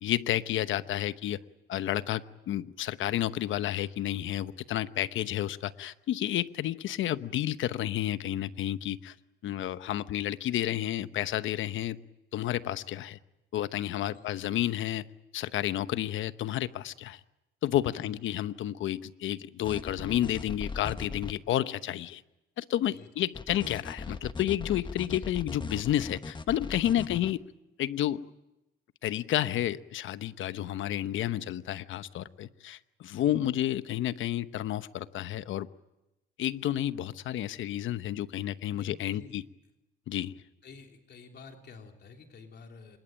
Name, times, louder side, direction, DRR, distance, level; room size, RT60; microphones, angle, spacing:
voice 1, 0.0-1.4 1.7-9.1 9.4-12.0 12.3-13.2 13.5-15.1 15.3-17.2 17.6-22.2 22.6-27.4 27.8-28.3 29.0-35.7 36.4-39.4 40.1-40.3, left 12 dB, 75° left, 14 dB, 1.0 m, -31 dB
sound 1, 19.6-21.3 23.3-27.3, left 4 dB, 25° left, 1.4 m, -39 dB
voice 2, 38.7-39.4 40.6-43.0, left 4 dB, 55° left, 3 dB, 3.3 m, -50 dB
26.0 x 21.5 x 9.1 m, 0.94 s
cardioid pair, 90°, 20 cm